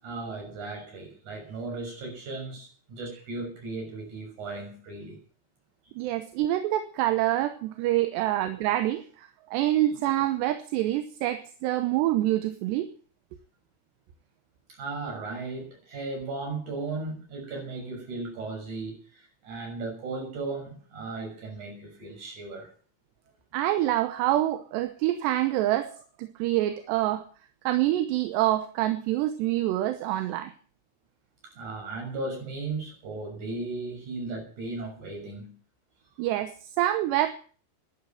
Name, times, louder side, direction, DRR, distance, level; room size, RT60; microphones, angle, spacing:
voice 1, 0.0-5.2 8.2-8.3 14.8-22.7 31.4-35.5, right 3 dB, 40° right, 7.7 m, -36 dB
voice 2, 6.0-12.9 23.5-25.9 26.2-27.2 27.7-30.5 36.2-37.3, right 14 dB, 75° right, 2.8 m, -26 dB
12.0 x 11.0 x 9.2 m
omnidirectional pair, 5.5 m